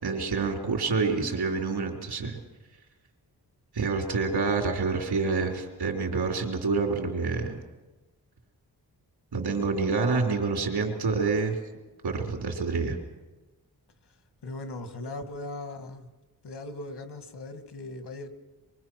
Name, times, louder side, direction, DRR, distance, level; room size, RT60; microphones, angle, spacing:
voice 1, 0.0-2.4 3.7-7.6 9.3-11.6 12.0-13.0, right 4 dB, 85° right, 2 dB, 3.4 m, -27 dB
voice 2, 14.4-16.1 16.4-18.3, left 2 dB, 90° left, 8 dB, 2.2 m, -38 dB
25.0 x 23.5 x 6.1 m, 1.2 s
wide cardioid pair, 175°, 39 cm